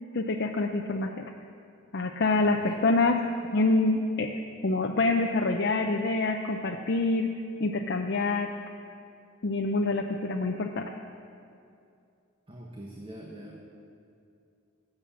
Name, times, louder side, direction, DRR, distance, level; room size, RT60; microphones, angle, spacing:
voice 1, 0.1-1.2 1.9-3.2 3.5-4.3 4.6-7.3 7.6-8.5 9.4-10.9, left 3 dB, 60° left, 3 dB, 0.6 m, -26 dB
voice 2, 12.5-13.6, right 1 dB, 30° right, -1 dB, 1.2 m, -43 dB
16.0 x 7.8 x 7.2 m, 2.5 s
head